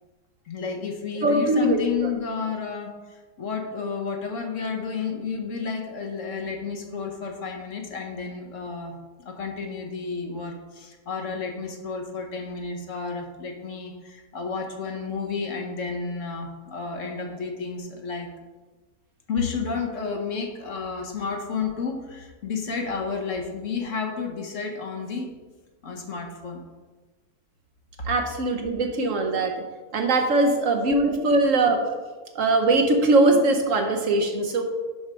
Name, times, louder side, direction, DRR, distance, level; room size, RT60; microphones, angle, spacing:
voice 1, 0.5-18.3 19.3-25.3 25.8-26.6 31.2-31.4, left 5 dB, 55° left, 3 dB, 1.2 m, -31 dB
voice 2, 1.2-1.8 28.1-29.6 29.9-31.8 32.3-34.6, right 2 dB, 60° right, 4 dB, 1.1 m, -21 dB
6.5 x 4.9 x 6.1 m, 1.3 s
omnidirectional pair, 1.7 m